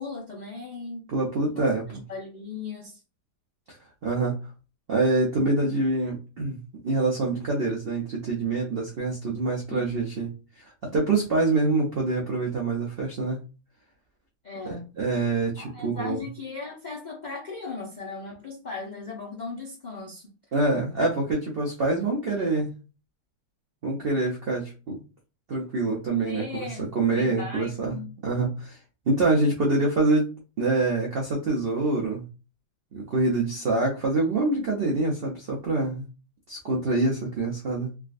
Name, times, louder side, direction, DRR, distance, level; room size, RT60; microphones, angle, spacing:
voice 1, 0.0-1.1 1.5-3.0 9.7-10.1 14.4-14.9 15.6-20.3 26.1-28.1, left 4 dB, 75° left, -2 dB, 0.4 m, -37 dB
voice 2, 1.1-1.8 3.7-3.8 4.0-4.3 4.9-6.6 6.8-10.3 10.6-13.4 14.6-16.2 20.5-22.7 23.8-25.0 25.5-28.0 28.2-28.8 29.1-32.2 32.9-36.0 36.5-37.9, right 3 dB, 75° right, -1 dB, 0.5 m, -25 dB
3.4 x 2.3 x 2.4 m, 0.32 s
omnidirectional pair, 1.8 m